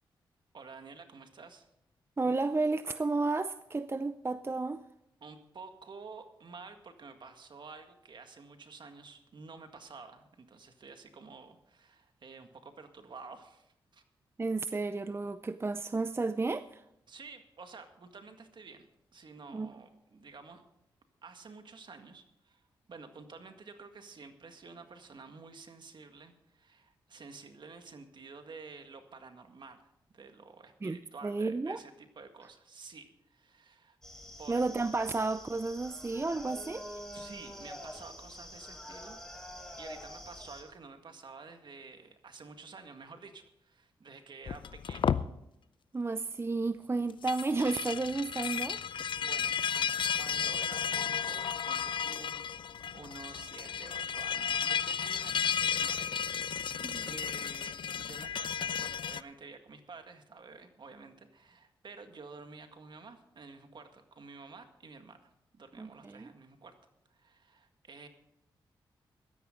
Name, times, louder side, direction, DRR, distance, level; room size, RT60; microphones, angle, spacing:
voice 1, 0.5-1.7 5.2-14.0 17.1-18.9 19.1-20.6 21.2-22.6 22.9-34.0 34.4-34.6 37.1-45.2 49.2-66.7 67.1-68.1, right 4 dB, 55° right, 1.9 m, -51 dB
voice 2, 2.2-4.8 14.4-16.8 19.5-19.7 30.8-31.8 34.5-37.0 45.9-48.8 56.8-57.1 65.8-66.3, right 3 dB, 25° right, 0.6 m, -32 dB
sound 1, 34.0-40.6, equal, 5° left, 4.2 m, -46 dB
sound 2, 44.5-45.3 47.1-59.2, left 7 dB, 65° left, 0.5 m, -33 dB
16.5 x 12.5 x 3.9 m
cardioid pair, 55°, 9 cm